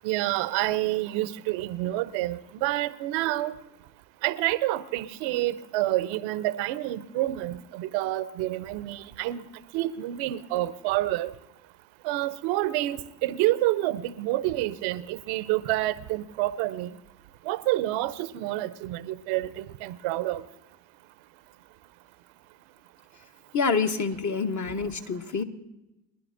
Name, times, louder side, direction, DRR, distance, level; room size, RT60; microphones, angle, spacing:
voice 1, 0.0-3.5 4.2-9.5 9.7-11.3 12.0-16.9 17.5-20.4, right 16 dB, 65° right, 0.8 m, -28 dB
voice 2, 23.5-25.4, left 5 dB, 35° left, 1.2 m, -27 dB
24.5 x 11.5 x 2.6 m
hypercardioid pair, 55°, 49 cm